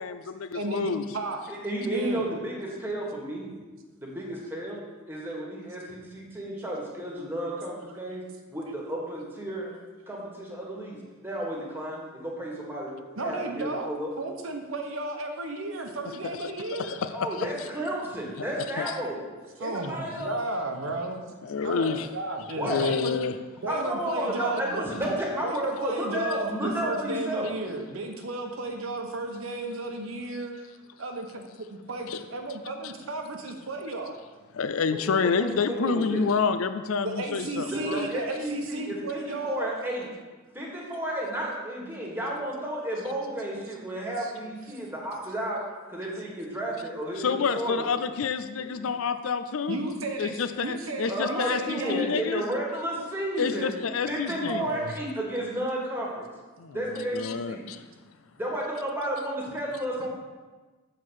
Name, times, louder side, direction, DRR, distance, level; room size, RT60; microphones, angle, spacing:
voice 1, 0.0-1.0 16.7-17.3 18.4-18.9 21.4-22.1 22.6-23.4 32.1-32.2 34.5-38.1 47.2-49.8 50.2-52.4 53.4-54.7 56.6-57.8, left 5 dB, 75° left, 10 dB, 0.5 m, -28 dB
voice 2, 0.5-1.4 1.8-2.3 13.2-13.9 14.2-17.0 19.6-21.2 21.6-23.2 23.6-24.9 25.4-30.6 31.0-31.4 31.7-34.2 37.0-39.8 44.2-44.3 49.7-52.0 54.3-54.9, right 2 dB, 75° right, 4 dB, 1.0 m, -34 dB
voice 3, 1.5-3.5 4.0-4.8 5.1-8.2 8.5-9.7 10.1-11.0 11.2-12.9 13.2-14.1 17.1-19.2 19.6-20.3 22.6-22.8 23.7-27.5 34.9-36.3 37.7-40.1 40.5-45.6 45.9-47.9 48.6-48.9 51.1-53.7 54.1-56.3 56.7-57.6 58.4-60.1, right 1 dB, 10° right, -3 dB, 1.7 m, -32 dB
7.4 x 4.6 x 6.4 m, 1.3 s
head